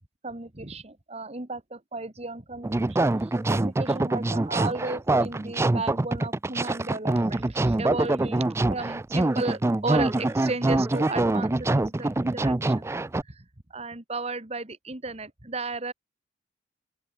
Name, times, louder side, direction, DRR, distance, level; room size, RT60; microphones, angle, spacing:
voice 1, 0.2-2.7 3.2-12.9 13.3-13.5 13.7-15.9, right 3 dB, 35° right, 2.1 m, -34 dB
sound 1, 2.6-13.2, right 2 dB, 15° right, 0.3 m, -25 dB
open air
head